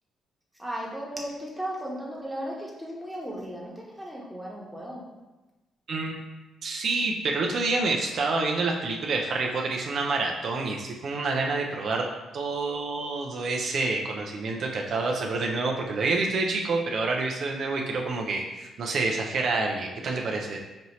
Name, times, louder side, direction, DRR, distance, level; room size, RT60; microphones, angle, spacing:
voice 1, 0.6-5.0, equal, ahead, -4 dB, 1.1 m, -36 dB
voice 2, 5.9-6.2 6.6-12.0 12.3-20.6, right 3 dB, 60° right, 1 dB, 0.5 m, -28 dB
5.2 x 2.7 x 3.0 m, 1.1 s
cardioid pair, 90°, 0 cm